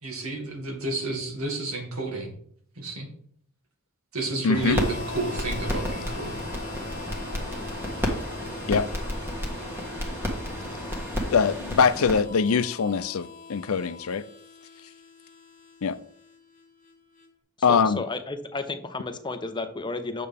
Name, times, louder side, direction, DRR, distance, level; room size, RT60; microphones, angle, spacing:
voice 1, 0.0-2.3 2.8-3.1 4.1-6.5, right 3 dB, 80° right, 2.2 m, -31 dB
voice 2, 4.4-4.8 8.7-8.9 11.3-14.2 15.8-16.0 17.6-18.0, left 5 dB, 75° left, 0.5 m, -23 dB
sound 1, 4.5-12.2, equal, 10° right, 1.5 m, -32 dB
Harmonica, 4.6-17.3, left 3 dB, 40° left, 1.9 m, -43 dB
voice 3, 17.7-20.3, left 3 dB, 20° left, 0.6 m, -32 dB
8.6 x 6.8 x 3.5 m
head